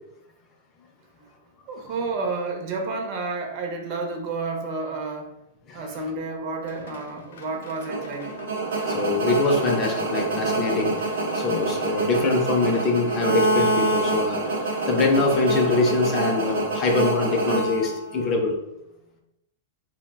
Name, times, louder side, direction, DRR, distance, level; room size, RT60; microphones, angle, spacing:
voice 1, 1.7-5.3 5.7-8.4, right 3 dB, 40° right, 2 dB, 0.5 m, -30 dB
sound 1, 6.6-18.3, left 4 dB, 85° left, 0.5 m, -45 dB
sound 2, 7.9-18.3, right 2 dB, 85° right, 0.6 m, -26 dB
voice 2, 8.9-18.6, left 3 dB, 25° left, 2 dB, 0.4 m, -24 dB
2.5 x 2.0 x 3.3 m, 0.88 s
supercardioid pair, 165°, 0 cm